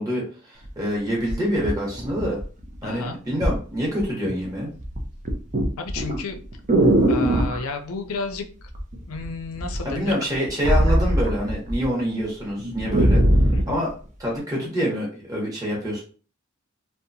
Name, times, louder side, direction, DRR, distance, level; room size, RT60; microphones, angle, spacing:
voice 1, 0.0-2.4 2.8-4.7 9.8-13.2 13.7-13.9 14.2-16.0, equal, 15° right, -3 dB, 0.9 m, -26 dB
sound 1, 0.6-0.7 1.3-2.8 3.4-3.6 4.0-4.5 4.8-7.6 8.7-9.3 9.6-11.9 12.2-12.3 12.6-13.7 14.4-14.5, right 1 dB, 35° right, 0.5 m, -21 dB
voice 2, 2.8-3.2 5.8-6.4 7.1-8.5 9.1-10.1 13.5-13.8, left 3 dB, 85° left, 7 dB, 0.5 m, -31 dB
2.7 x 2.2 x 2.6 m, 0.39 s
head